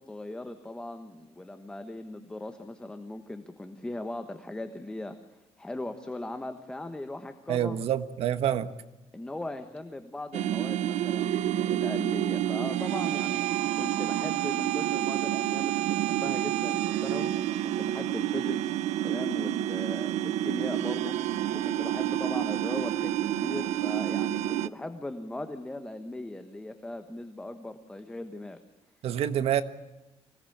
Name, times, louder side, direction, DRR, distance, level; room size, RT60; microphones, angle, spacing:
voice 1, 0.0-5.2 5.6-7.8 9.1-13.4 13.7-17.3 17.6-21.1 21.5-28.6, left 2 dB, 10° left, 8 dB, 1.3 m, -39 dB
voice 2, 7.5-8.7 29.0-29.6, right 10 dB, 60° right, 11 dB, 1.5 m, -27 dB
sound 1, 10.3-24.7, right 13 dB, 85° right, 0.8 m, -29 dB
25.5 x 18.5 x 8.6 m, 1.0 s
cardioid pair, 175°, 11 cm